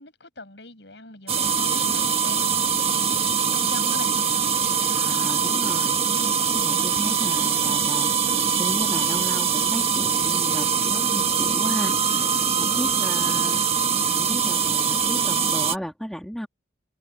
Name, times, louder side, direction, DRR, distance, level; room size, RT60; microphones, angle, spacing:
voice 1, 0.0-4.1 12.9-13.2, left 2 dB, 70° left, 7.7 m, -42 dB
sound 1, 1.3-15.8, right 6 dB, 35° right, 1.4 m, -23 dB
voice 2, 4.9-13.8 14.1-16.5, equal, ahead, 2.1 m, -35 dB
head